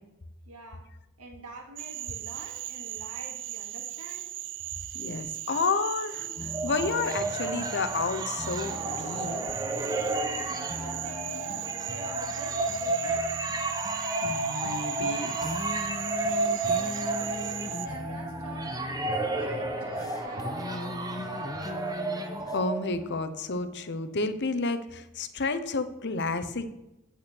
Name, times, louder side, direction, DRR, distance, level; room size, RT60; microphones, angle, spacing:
voice 1, 0.4-0.9 1.2-4.3 10.6-13.5 16.2-18.8 19.3-21.8, right 1 dB, 80° right, 1 dB, 2.3 m, -46 dB
Cricket / Frog, 1.8-17.9, right 15 dB, 55° right, 0.5 m, -38 dB
voice 2, 4.9-6.3 6.6-9.4 14.2-15.3 22.5-26.7, left 3 dB, 50° left, 10 dB, 0.9 m, -30 dB
sound 1, 6.2-23.2, right 2 dB, 15° right, 1.1 m, -32 dB
sound 2, 6.4-22.6, left 2 dB, 15° left, 0.3 m, -41 dB
8.9 x 8.5 x 6.1 m, 0.93 s
head